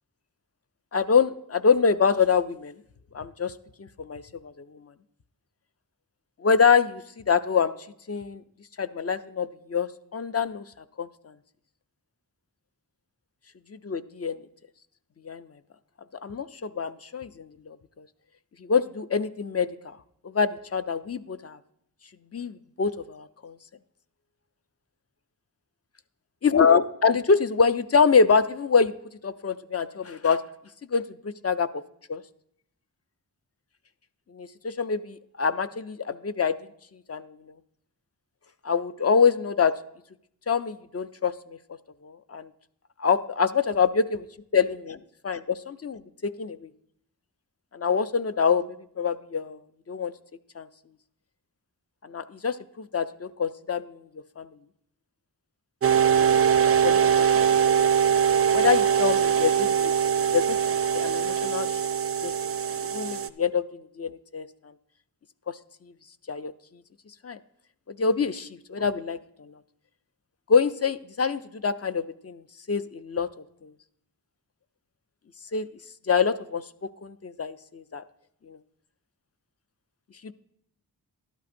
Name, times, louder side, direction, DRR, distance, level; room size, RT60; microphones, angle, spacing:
voice 1, 0.9-2.7 3.1-3.5 3.8-4.8 6.4-7.7 8.1-8.4 8.8-10.6 11.0-11.1 13.7-14.4 15.2-15.4 16.2-18.0 18.6-19.7 20.3-21.6 22.3-23.6 26.4-28.9 29.2-30.4 30.9-31.7 32.1-32.2 34.3-36.5 37.1-37.3 38.6-39.7 40.5-41.6 42.0-42.5 43.0-44.3 44.5-45.0 45.2-46.7 47.7-49.6 49.9-50.1 50.6-50.7 52.0-54.0 54.4-54.5 56.2-56.3 56.8-57.9 58.5-60.6 60.9-61.8 62.2-62.3 62.9-63.6 64.0-64.5 66.3-66.5 67.2-67.4 67.9-69.5 70.5-72.4 72.7-73.3 73.6-73.7 75.5-75.7 76.1-76.6 77.0-78.0 78.5-78.6 80.2-80.3, left 5 dB, 40° left, 12 dB, 0.4 m, -25 dB
sound 1, 55.8-63.3, right 8 dB, 35° right, 0.4 m, -22 dB
12.0 x 11.0 x 2.6 m, 0.73 s
cardioid pair, 45°, 39 cm